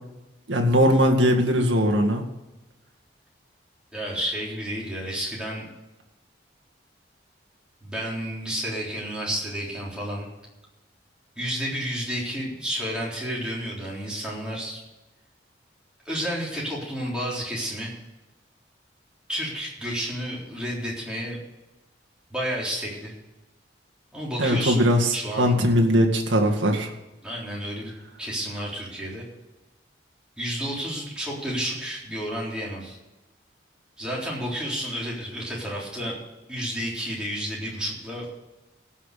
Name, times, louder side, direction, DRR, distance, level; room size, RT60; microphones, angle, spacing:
voice 1, 0.5-2.2 24.4-26.9, equal, 80° right, 2 dB, 2.0 m, -20 dB
voice 2, 3.9-5.7 7.8-10.3 11.4-14.8 16.1-17.9 19.3-21.4 22.3-23.1 24.1-24.8 25.1-25.6 27.2-27.9 28.2-29.2 30.4-33.0 34.0-36.2 36.5-38.3, equal, 5° right, -5 dB, 3.7 m, -31 dB
17.5 x 6.0 x 6.7 m, 1.0 s
head